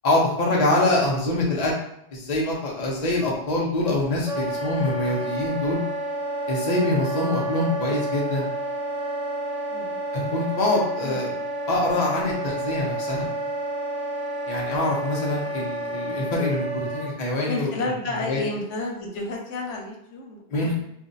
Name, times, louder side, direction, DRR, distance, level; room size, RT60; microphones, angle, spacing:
voice 1, 0.0-1.7 2.1-5.8 6.5-8.5 10.1-11.3 11.7-13.3 14.5-17.7 18.3-18.4 20.5-20.7, left 2 dB, 45° left, -3 dB, 0.6 m, -24 dB
Wind instrument woodwind instrument, 4.3-17.1, right 1 dB, 40° right, 0.8 m, -30 dB
voice 2, 17.4-20.7, left 2 dB, 90° left, 1 dB, 1.0 m, -31 dB
2.6 x 2.1 x 3.8 m, 0.78 s
omnidirectional pair, 1.2 m